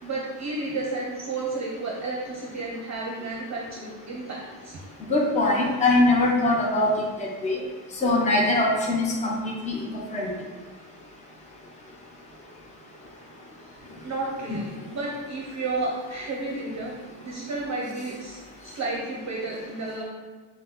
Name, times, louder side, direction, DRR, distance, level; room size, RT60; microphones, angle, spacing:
voice 1, 0.0-4.8 14.0-16.9 17.2-20.0, right 2 dB, 40° right, -3 dB, 0.7 m, -32 dB
voice 2, 5.1-6.9 7.2-7.6 8.0-9.8 10.1-10.3 14.5-14.6, left 2 dB, 15° left, -3 dB, 0.7 m, -22 dB
5.8 x 2.2 x 3.8 m, 1.4 s
cardioid pair, 135°, 45 cm